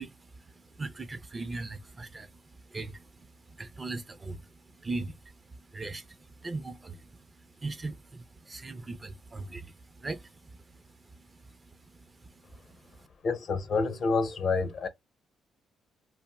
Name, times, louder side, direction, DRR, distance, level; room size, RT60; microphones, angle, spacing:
voice 1, 0.0-13.1, right 3 dB, 25° right, 0.4 m, -41 dB
voice 2, 13.2-14.9, left 4 dB, 55° left, 0.6 m, -28 dB
2.5 x 2.0 x 3.4 m
cardioid pair, 90°, 0 cm